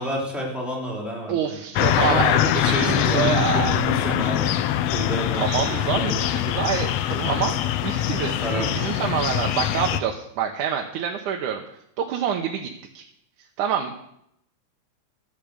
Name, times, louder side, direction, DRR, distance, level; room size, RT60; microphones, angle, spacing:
voice 1, 0.0-1.5 1.9-4.5 4.9-5.6 5.9-6.2 8.4-8.8, equal, ahead, -4 dB, 4.1 m, -29 dB
voice 2, 1.3-3.8 5.3-7.6 7.8-11.6 12.0-12.7 12.9-13.0 13.6-13.9, right 8 dB, 80° right, 2 dB, 2.5 m, -26 dB
sound 1, 1.8-10.0, left 11 dB, 75° left, 1.6 m, -23 dB
14.5 x 9.2 x 6.7 m, 0.77 s
omnidirectional pair, 3.6 m